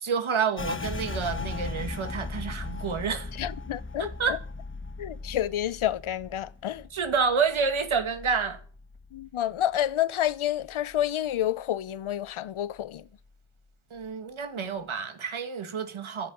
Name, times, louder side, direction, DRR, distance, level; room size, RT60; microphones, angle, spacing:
voice 1, 0.0-3.3 4.0-4.4 6.9-8.6 13.9-16.3, right 5 dB, 70° right, 2.0 m, -29 dB
sound 1, 0.6-10.0 10.3-11.5 11.8-12.3 12.7-13.3, left 3 dB, 25° left, 1.1 m, -38 dB
voice 2, 3.4-4.4 5.0-6.9 9.1-13.0, left 12 dB, 75° left, 0.7 m, -29 dB
11.0 x 7.6 x 8.6 m
cardioid pair, 60°, 50 cm